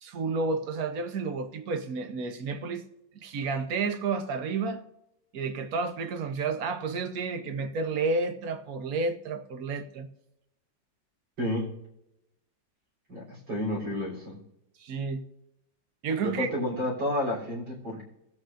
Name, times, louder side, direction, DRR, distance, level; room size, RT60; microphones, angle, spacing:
voice 1, 0.0-2.8 3.1-4.8 5.3-10.1 14.8-15.2 16.0-16.5, right 4 dB, 55° right, 8 dB, 1.3 m, -31 dB
voice 2, 13.1-14.4 16.2-18.0, left 1 dB, 80° right, -4 dB, 4.4 m, -30 dB
22.0 x 8.0 x 2.6 m, 0.85 s
omnidirectional pair, 2.0 m